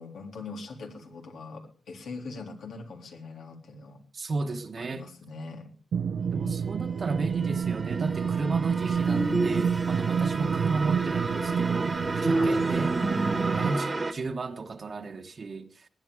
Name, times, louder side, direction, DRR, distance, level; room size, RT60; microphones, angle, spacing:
voice 1, 0.0-4.0 4.8-5.7 9.1-9.5 12.3-12.7, left 3 dB, 85° left, 3.8 m, -41 dB
voice 2, 4.1-5.1 6.3-12.9 13.5-15.9, right 3 dB, 45° right, 1.3 m, -34 dB
sound 1, 5.9-13.7, right 7 dB, 85° right, 1.0 m, -28 dB
sound 2, 6.4-14.1, right 3 dB, 30° right, 1.4 m, -34 dB
sound 3, 9.1-10.3 11.6-13.8, right 2 dB, 10° right, 0.9 m, -30 dB
19.5 x 9.8 x 4.9 m
wide cardioid pair, 110°, 0 cm